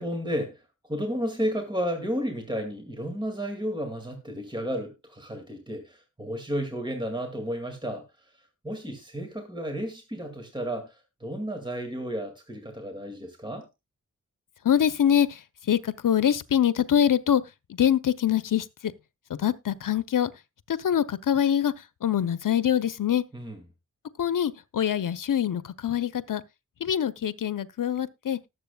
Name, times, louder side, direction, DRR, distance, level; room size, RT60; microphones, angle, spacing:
voice 1, 0.0-8.1 8.6-13.7 23.3-23.6, equal, 15° right, 2.1 m, -32 dB
voice 2, 14.6-17.4 17.7-18.9 19.3-20.3 20.7-23.2 24.2-26.4 26.8-28.4, left 9 dB, 85° left, 0.7 m, -24 dB
19.0 x 7.5 x 2.3 m
wide cardioid pair, 90°, 31 cm